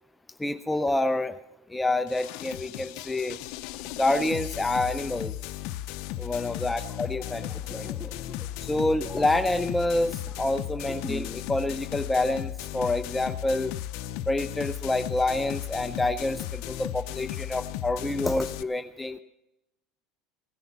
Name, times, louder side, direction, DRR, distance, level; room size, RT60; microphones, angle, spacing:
voice 1, 0.4-1.4 1.7-3.4 4.0-5.4 6.2-7.9 8.6-13.7 14.3-19.2, left 2 dB, 10° left, 9 dB, 0.4 m, -27 dB
sound 1, 2.1-18.6, left 13 dB, 70° left, 0.5 m, -36 dB
sound 2, 6.7-11.5 11.7-12.0, left 1 dB, 10° right, 1.4 m, -43 dB
16.5 x 9.8 x 6.9 m, 0.92 s
supercardioid pair, 120°, 0 cm